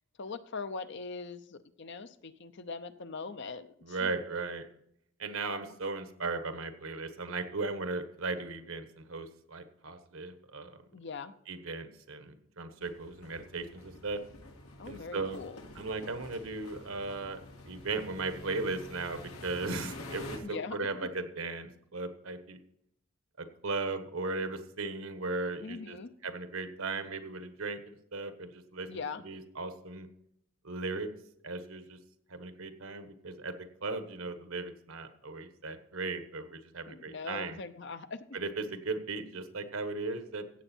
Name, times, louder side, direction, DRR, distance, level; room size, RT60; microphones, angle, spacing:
voice 1, 0.2-4.2 10.9-11.3 14.8-15.6 20.4-21.1 25.6-26.1 28.9-29.2 36.9-38.4, left 4 dB, 55° left, 11 dB, 0.7 m, -41 dB
voice 2, 3.8-4.7 5.2-10.8 11.5-14.2 14.9-15.4 15.7-17.4 17.7-22.6 23.4-26.0 26.2-30.1 30.6-31.1 31.4-32.0 32.3-33.5 33.8-37.6 38.3-40.4, right 3 dB, 75° right, 9 dB, 1.3 m, -37 dB
sound 1, 12.8-20.4, left 2 dB, 90° left, 2.0 m, -47 dB
15.5 x 8.0 x 4.4 m, 0.73 s
head